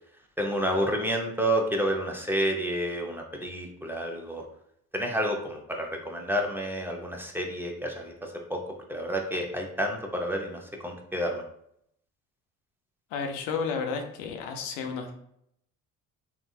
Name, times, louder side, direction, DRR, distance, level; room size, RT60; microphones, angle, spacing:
voice 1, 0.4-4.4 4.9-8.6 8.9-11.4, equal, 5° right, 1 dB, 0.5 m, -30 dB
voice 2, 13.1-15.1, left 5 dB, 90° left, 4 dB, 0.5 m, -32 dB
3.4 x 2.5 x 2.3 m, 0.72 s
supercardioid pair, 65°, 35 cm